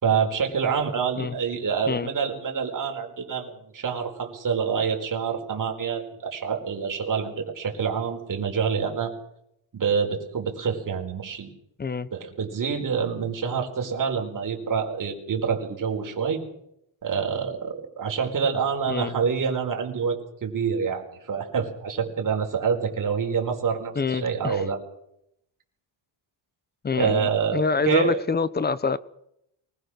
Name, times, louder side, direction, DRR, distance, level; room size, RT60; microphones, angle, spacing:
voice 1, 0.0-9.1 9.7-11.5 12.1-16.4 17.0-24.8 26.9-28.2, right 6 dB, 40° right, 2 dB, 4.7 m, -27 dB
voice 2, 24.0-24.6 26.8-29.0, left 5 dB, 20° left, 16 dB, 0.9 m, -26 dB
24.0 x 20.5 x 6.5 m, 0.78 s
cardioid pair, 160°, 49 cm